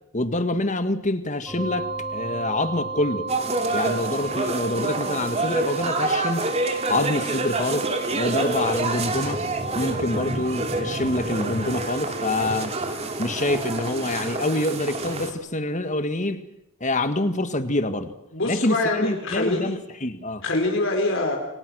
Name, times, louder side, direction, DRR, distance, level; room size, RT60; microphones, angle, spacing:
voice 1, 0.1-3.3 3.7-6.5 6.9-9.4 9.7-12.7 13.2-16.4 16.8-18.1 18.5-20.4, left 1 dB, 35° left, 1.8 m, -26 dB
sound 1, 1.5-12.3, right 4 dB, ahead, 6.4 m, -34 dB
sound 2, 3.3-15.3, right 2 dB, 30° right, 2.7 m, -28 dB
voice 2, 18.3-19.7 20.4-21.4, left 2 dB, 60° left, 4.5 m, -24 dB
29.0 x 25.0 x 6.3 m
head